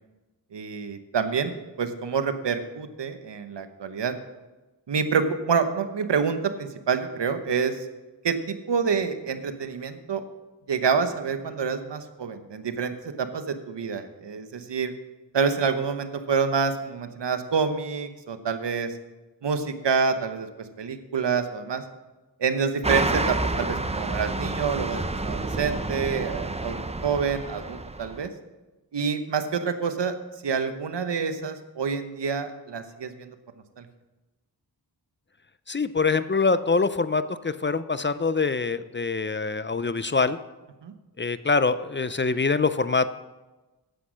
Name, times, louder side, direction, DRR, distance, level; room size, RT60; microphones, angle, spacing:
voice 1, 0.5-4.1 4.9-7.8 8.2-10.2 10.7-14.9 15.3-18.9 19.4-20.5 20.8-21.8 22.4-28.3 28.9-30.2 30.4-33.3 33.8-33.9 40.8-40.9, right 5 dB, 75° right, 9 dB, 1.0 m, -27 dB
sound 1, 22.8-28.3, right 2 dB, 15° right, 0.6 m, -29 dB
voice 2, 35.7-40.4 41.2-43.1, left 4 dB, 25° left, 14 dB, 0.5 m, -24 dB
10.0 x 8.1 x 6.3 m, 1.1 s
cardioid pair, 55°, 42 cm